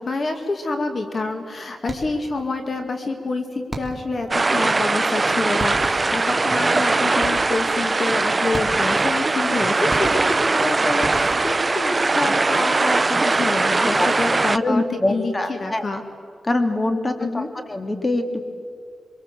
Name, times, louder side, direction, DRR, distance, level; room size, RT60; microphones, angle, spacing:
voice 1, 0.0-16.0 17.2-17.5, left 3 dB, 45° left, 5 dB, 2.0 m, -27 dB
sound 1, 1.8-2.3 3.7-4.2 5.2-5.3 5.6-6.2 7.2-7.7 8.5-9.1 9.9-10.6 11.0-11.7, right 1 dB, ahead, 3.0 m, -34 dB
sound 2, 4.3-14.6, right 3 dB, 30° right, 0.6 m, -20 dB
voice 2, 14.5-15.9 16.4-17.4 17.7-18.4, left 2 dB, 20° left, 6 dB, 2.4 m, -23 dB
25.5 x 23.5 x 7.5 m, 2.3 s
wide cardioid pair, 110°, 0 cm